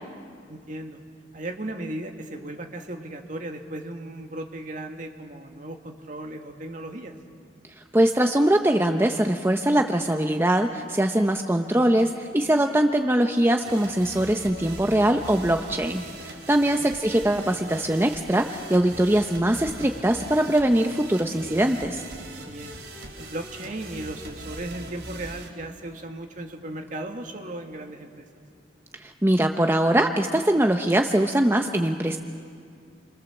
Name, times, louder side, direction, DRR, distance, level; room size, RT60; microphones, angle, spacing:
voice 1, 0.5-1.0 1.3-7.1 16.6-16.9 22.4-22.8 23.2-28.3, right 1 dB, 45° right, 4 dB, 2.0 m, -36 dB
voice 2, 7.9-22.0 29.0-32.2, right 1 dB, 15° right, 4 dB, 0.8 m, -22 dB
sound 1, 13.6-25.5, right 2 dB, 70° right, 3.7 m, -41 dB
29.5 x 23.5 x 7.3 m, 2.2 s
head